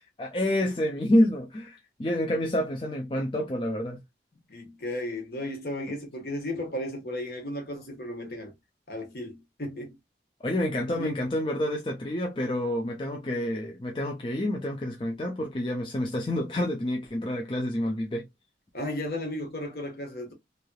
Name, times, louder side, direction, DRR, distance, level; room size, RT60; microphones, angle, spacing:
voice 1, 0.2-4.0 10.4-18.2, left 1 dB, 30° left, 0.5 m, -28 dB
voice 2, 4.5-8.5 8.9-9.9 11.0-11.2 18.7-20.3, left 1 dB, 60° left, 1.3 m, -34 dB
3.3 x 2.8 x 2.2 m
head